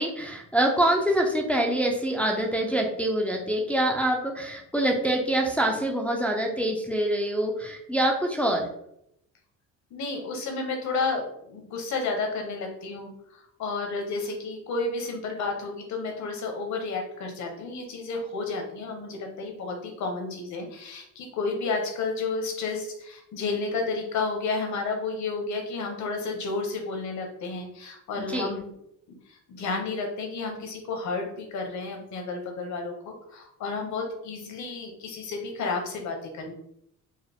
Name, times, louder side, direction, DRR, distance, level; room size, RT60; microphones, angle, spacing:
voice 1, 0.0-8.7 28.3-28.5, right 1 dB, 5° left, 0 dB, 0.4 m, -25 dB
voice 2, 9.9-28.7 29.3-36.5, left 3 dB, 60° left, 3 dB, 1.0 m, -31 dB
4.6 x 2.0 x 3.4 m, 0.77 s
cardioid pair, 130°, 33 cm